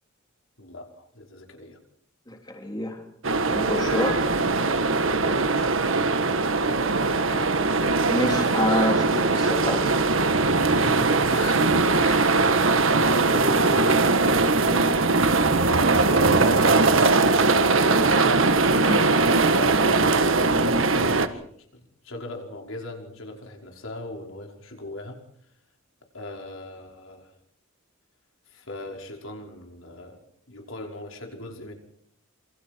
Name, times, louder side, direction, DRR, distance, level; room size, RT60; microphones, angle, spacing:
voice 1, 0.6-1.8 5.2-5.9 7.0-7.7 10.7-11.6 12.4-18.3 19.3-21.5 21.7-25.2 26.1-27.3 28.5-30.2 30.5-31.7, left 2 dB, 80° left, 2 dB, 5.4 m, -39 dB
voice 2, 2.3-3.0 3.5-4.3 8.1-9.9 11.3-11.6 12.0-12.5 18.8-19.0, left 1 dB, 20° left, 2 dB, 3.4 m, -28 dB
sound 1, 3.2-21.3, right 3 dB, 75° right, 1.7 m, -21 dB
27.0 x 25.5 x 4.6 m, 0.63 s
head